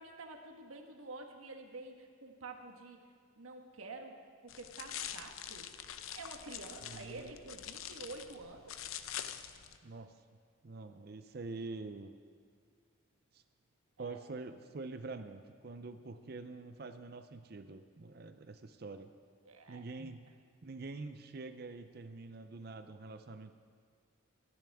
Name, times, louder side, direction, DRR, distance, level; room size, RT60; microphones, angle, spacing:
voice 1, 0.0-3.0 3.4-4.2 4.4-5.7 6.1-8.9 14.0-14.2 19.4-19.8, right 3 dB, 90° right, 3 dB, 1.4 m, -49 dB
sound 1, 4.5-9.8, left 10 dB, 80° left, 0.6 m, -45 dB
voice 2, 6.8-7.3 9.8-10.1 10.6-12.2 13.3-13.4 14.0-19.1 19.7-20.3 20.6-23.5, right 3 dB, 50° right, 9 dB, 0.5 m, -46 dB
24.0 x 11.0 x 3.5 m, 2.1 s
head